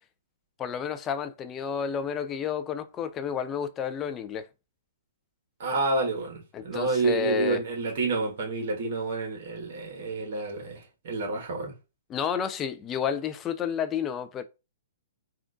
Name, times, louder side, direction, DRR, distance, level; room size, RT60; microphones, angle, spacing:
voice 1, 0.6-4.5 6.5-7.6 12.1-14.4, left 7 dB, 20° left, 0.4 m, -30 dB
voice 2, 5.6-11.7, right 3 dB, 55° right, 1.4 m, -29 dB
3.6 x 2.4 x 2.4 m
hypercardioid pair, 135°, 0 cm